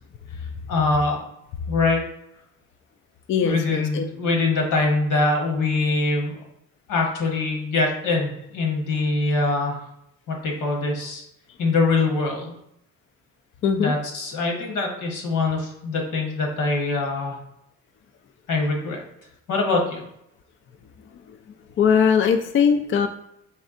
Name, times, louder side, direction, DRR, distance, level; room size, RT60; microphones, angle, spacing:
voice 1, 0.7-1.2 1.7-2.0 3.4-6.3 6.9-9.8 10.3-11.2 11.6-12.5 13.8-17.4 18.5-19.0 19.5-20.0, left 3 dB, 90° left, 1 dB, 1.3 m, -23 dB
voice 2, 3.3-4.0 13.6-13.9 21.8-23.1, left 7 dB, 45° left, 6 dB, 0.4 m, -20 dB
4.2 x 3.5 x 2.5 m, 0.78 s
cardioid pair, 90°, 30 cm